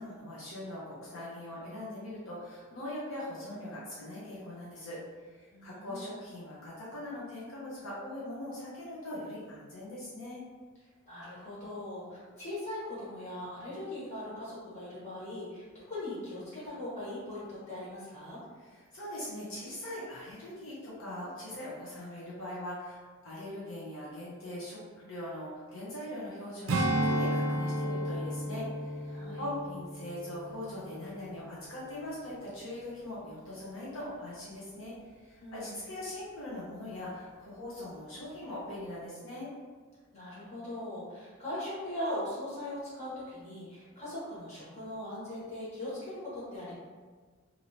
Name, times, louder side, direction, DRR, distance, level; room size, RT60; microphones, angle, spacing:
voice 1, 0.0-5.0 5.2-10.4 18.7-39.5, left 1 dB, 70° left, -8 dB, 0.8 m, -41 dB
voice 2, 5.5-6.1 11.1-18.4 29.1-29.4 35.4-35.8 40.1-46.7, left 1 dB, 30° left, -10 dB, 1.3 m, -40 dB
Strum, 26.7-31.4 31.8-32.0, right 1 dB, 65° right, 0.4 m, -33 dB
3.0 x 2.7 x 2.7 m, 1.5 s
head